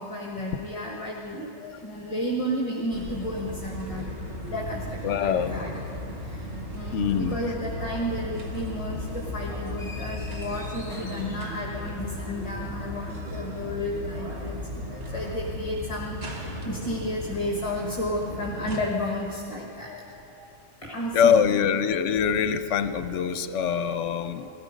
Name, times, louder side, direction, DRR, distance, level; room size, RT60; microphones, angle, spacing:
voice 1, 0.0-4.0 4.5-5.7 6.7-14.6 14.9-20.5 20.8-21.5, left 1 dB, 25° left, -2 dB, 1.4 m, -32 dB
sound 1, 2.9-18.8, equal, 60° right, 2.0 m, -36 dB
voice 2, 5.0-5.6 6.9-7.5 16.9-17.0 21.1-24.5, left 7 dB, 75° left, 11 dB, 1.0 m, -24 dB
sound 2, 9.8-12.3, left 2 dB, ahead, 2.0 m, -45 dB
17.5 x 13.5 x 5.1 m, 3.0 s
omnidirectional pair, 1.3 m